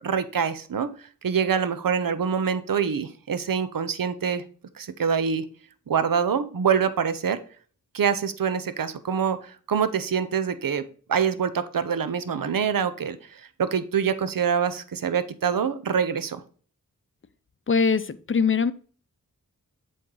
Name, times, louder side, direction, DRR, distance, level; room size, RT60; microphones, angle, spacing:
voice 1, 0.0-0.9 1.2-4.4 4.8-5.5 5.9-7.4 7.9-16.4, right 7 dB, 70° right, 13 dB, 0.7 m, -25 dB
voice 2, 17.7-18.7, left 5 dB, 35° left, 14 dB, 0.6 m, -22 dB
7.5 x 4.5 x 3.9 m, 0.43 s
wide cardioid pair, 65°, 35 cm